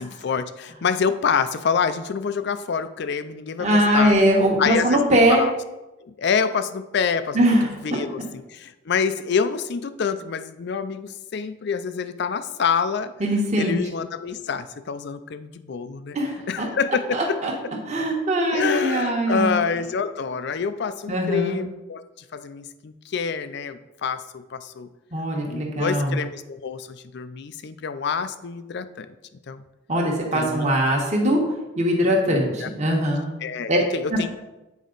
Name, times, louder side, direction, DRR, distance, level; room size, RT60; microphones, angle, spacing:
voice 1, 0.0-4.2 4.6-5.5 6.0-7.4 7.8-13.1 13.5-16.2 16.5-17.4 18.5-22.0 22.3-24.9 25.4-29.1 29.5-29.6 30.3-30.8 32.2-33.0 33.4-34.3, left 6 dB, 60° left, 12 dB, 0.4 m, -27 dB
voice 2, 3.6-5.4 7.3-8.3 13.2-13.8 16.1-16.7 17.1-19.6 21.1-21.6 25.1-26.2 29.9-31.4 31.8-33.3 33.7-33.8 34.1-34.3, equal, 35° right, -1 dB, 1.2 m, -21 dB
8.3 x 4.7 x 3.9 m, 1.0 s
head